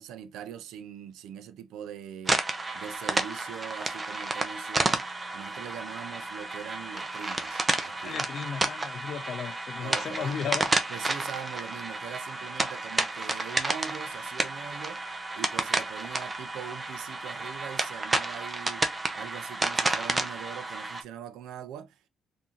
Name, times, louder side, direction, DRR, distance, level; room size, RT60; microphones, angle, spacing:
voice 1, 0.0-2.4 2.7-5.1 5.3-8.2 9.8-10.6 10.9-15.1 15.3-22.1, right 9 dB, 90° right, 0.4 m, -42 dB
sound 1, 2.3-21.0, right 2 dB, 25° right, 0.7 m, -31 dB
voice 2, 8.0-10.7, left 7 dB, 65° left, 0.4 m, -35 dB
3.6 x 2.6 x 2.9 m
cardioid pair, 90°, 0 cm